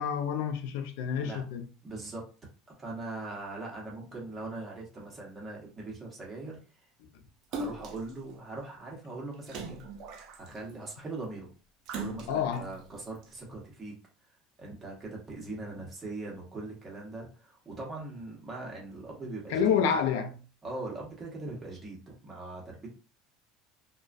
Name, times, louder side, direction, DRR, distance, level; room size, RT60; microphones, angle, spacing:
voice 1, 0.0-1.7 12.3-12.7 19.5-20.4, left 7 dB, 80° left, 0.4 m, -28 dB
voice 2, 1.8-2.2 2.8-6.6 7.5-9.8 10.4-11.5 11.9-13.9 14.6-19.8 20.6-22.9, right 2 dB, 20° right, 1.0 m, -41 dB
Splash splatter, 7.5-8.1 9.5-10.7 11.9-12.6 13.2-13.3, right 3 dB, 55° right, 0.4 m, -39 dB
2.2 x 2.2 x 2.5 m
supercardioid pair, 135°, 0 cm